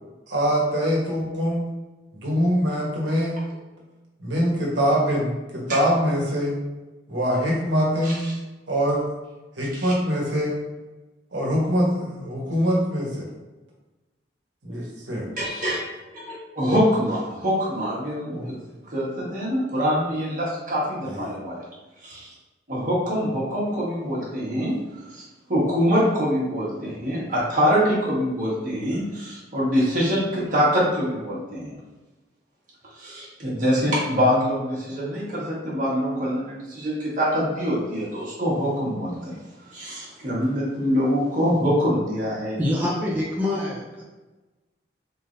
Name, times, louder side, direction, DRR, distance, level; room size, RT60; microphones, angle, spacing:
voice 1, 0.3-1.7 2.1-3.4 4.2-6.6 7.1-8.3 8.7-9.0 9.6-10.6 11.3-13.3 14.6-15.3 18.3-18.4 21.1-21.3, equal, 80° right, -3 dB, 1.2 m, -23 dB
voice 2, 8.0-8.3 9.7-9.9 15.4-15.9 16.3-18.5 18.8-21.6 22.0-22.3 22.7-24.7 25.1-25.2 25.5-31.7 33.0-39.4 39.7-42.6, equal, 45° right, -6 dB, 1.5 m, -24 dB
voice 3, 42.6-44.0, left 1 dB, 10° right, -6 dB, 0.6 m, -25 dB
4.1 x 3.6 x 2.6 m, 1.1 s
head